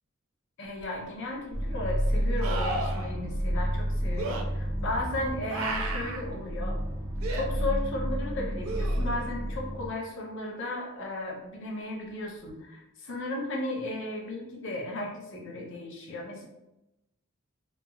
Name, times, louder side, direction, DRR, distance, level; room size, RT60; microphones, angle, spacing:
voice 1, 0.6-6.8 7.3-16.5, left 2 dB, 60° left, -1 dB, 0.7 m, -35 dB
sound 1, 0.8-0.9 2.4-3.1 4.2-4.4 5.5-6.2 7.2-7.5 8.6-9.3 12.5-12.6, right 2 dB, 70° right, 0.4 m, -33 dB
sound 2, 1.5-9.9, equal, 40° right, 0.8 m, -30 dB
3.0 x 2.5 x 2.3 m, 0.93 s
head